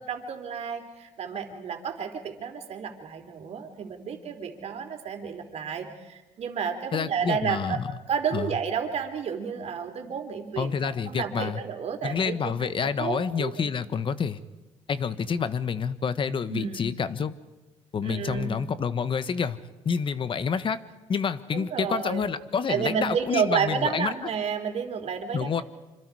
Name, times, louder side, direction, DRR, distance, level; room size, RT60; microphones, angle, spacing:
voice 1, 0.0-7.8 8.1-10.7 11.1-12.7 13.0-13.7 16.5-16.9 18.0-18.5 21.5-22.3 22.7-25.6, right 7 dB, 60° right, 4 dB, 3.6 m, -31 dB
voice 2, 6.9-7.9 8.3-8.5 10.6-11.6 12.0-14.4 14.9-17.3 17.9-19.6 19.8-20.8 21.1-24.1 25.3-25.6, left 6 dB, 45° left, 13 dB, 1.3 m, -28 dB
26.0 x 26.0 x 4.9 m, 1.1 s
cardioid pair, 100°, 13 cm